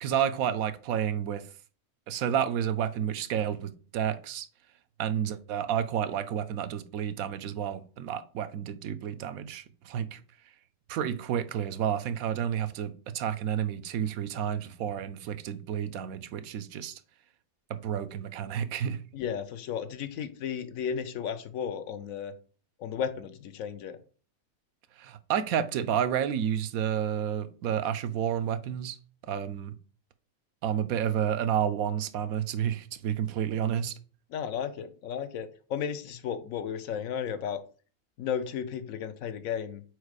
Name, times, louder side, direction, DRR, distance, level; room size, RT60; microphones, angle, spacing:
voice 1, 0.0-1.5 2.1-4.5 5.0-10.2 10.9-17.0 17.7-19.0 25.0-29.0 29.2-29.7 30.6-33.9, right 9 dB, 85° right, 1.0 m, -30 dB
voice 2, 19.1-22.3 22.8-24.0 34.3-37.6 38.2-39.8, left 8 dB, 75° left, 1.1 m, -34 dB
4.8 x 4.3 x 4.7 m
omnidirectional pair, 1.5 m